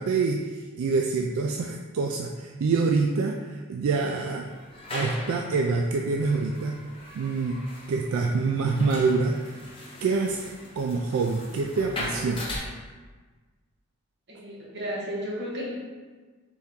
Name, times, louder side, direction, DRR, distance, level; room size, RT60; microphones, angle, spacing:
voice 1, 0.0-4.5 4.9-6.8 7.2-7.6 7.9-9.6 10.0-12.5, right 4 dB, 75° right, 2 dB, 0.3 m, -26 dB
sound 1, 4.4-12.6, left 1 dB, 25° left, 0.8 m, -40 dB
voice 2, 14.3-15.7, equal, 50° right, -5 dB, 1.2 m, -33 dB
4.3 x 3.5 x 3.6 m, 1.4 s
head